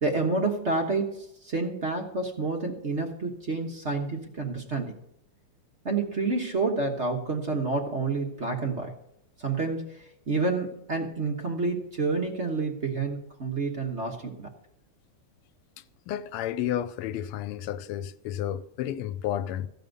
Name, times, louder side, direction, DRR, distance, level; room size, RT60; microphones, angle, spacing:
voice 1, 0.0-4.9 5.8-8.9 9.4-14.5, right 3 dB, 40° right, 1.2 m, -29 dB
voice 2, 16.1-19.7, left 11 dB, 85° left, 1.6 m, -31 dB
15.0 x 5.3 x 9.0 m
omnidirectional pair, 2.4 m